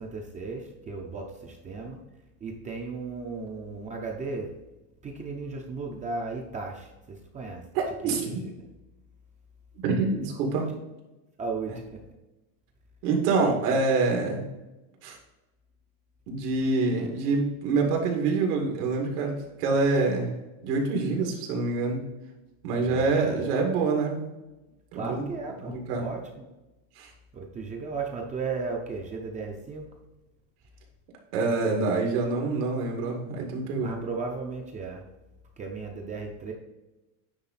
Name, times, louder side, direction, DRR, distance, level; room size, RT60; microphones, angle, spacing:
voice 1, 0.0-2.0 2.4-4.5 5.0-7.6 8.0-8.5 10.3-10.4 11.4-12.0 22.8-23.6 24.9-26.5 27.3-29.9 33.8-35.0 35.6-36.5, right 4 dB, 15° right, 1 dB, 0.5 m, -35 dB
voice 2, 7.7-8.4 9.8-10.7 13.0-14.4 15.0-15.2 16.3-20.3 20.6-22.0 22.6-24.3 24.9-25.3 25.6-26.0 27.0-27.1 31.3-34.0, right 3 dB, 90° right, 1 dB, 2.3 m, -26 dB
9.7 x 3.7 x 4.1 m, 1.0 s
cardioid pair, 165°, 44 cm